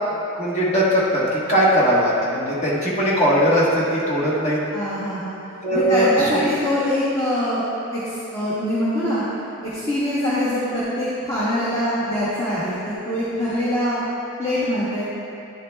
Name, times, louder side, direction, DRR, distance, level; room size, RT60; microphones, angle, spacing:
voice 1, 0.4-4.6 5.6-6.5, equal, 30° left, -7 dB, 1.2 m, -19 dB
voice 2, 4.7-5.4 5.7-7.6 7.9-9.2 9.6-14.0 14.4-15.1, left 1 dB, 15° left, -11 dB, 0.9 m, -24 dB
10.0 x 7.3 x 2.3 m, 2.8 s
head